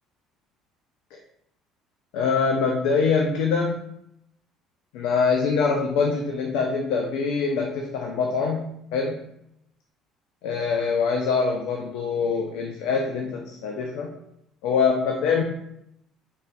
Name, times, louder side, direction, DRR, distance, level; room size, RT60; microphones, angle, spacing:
voice 1, 2.1-3.9 4.9-9.2 10.4-14.1 14.6-15.4, left 5 dB, 70° left, 1 dB, 0.4 m, -24 dB
3.8 x 3.6 x 2.2 m, 0.78 s
hypercardioid pair, 60°, 0 cm